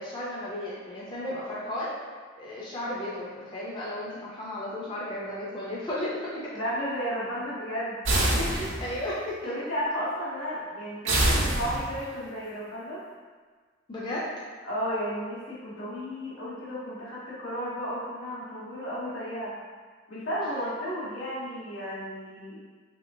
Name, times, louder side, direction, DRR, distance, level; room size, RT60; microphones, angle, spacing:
voice 1, 0.0-2.0 2.3-6.5 8.4-9.5 13.9-14.3, left 1 dB, 20° left, -7 dB, 0.4 m, -34 dB
voice 2, 6.5-8.7 9.4-13.0 14.6-19.5 20.1-22.6, equal, 85° left, -9 dB, 1.2 m, -33 dB
sound 1, 8.0-9.1 11.0-12.1, right 1 dB, 70° right, 0.6 m, -25 dB
3.2 x 2.9 x 2.5 m, 1.5 s
head